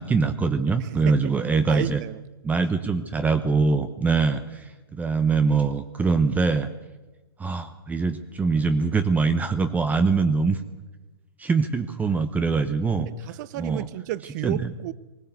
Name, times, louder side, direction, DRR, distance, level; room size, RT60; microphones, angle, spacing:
voice 1, 0.0-2.0 2.4-6.7 7.4-10.6 11.4-13.1 13.5-13.9 14.4-14.7, right 4 dB, 10° right, 0.9 m, -23 dB
voice 2, 0.8-1.3 1.7-2.2 13.0-14.9, right 15 dB, 45° right, 0.8 m, -32 dB
20.0 x 16.5 x 8.2 m
hypercardioid pair, 125°, 13 cm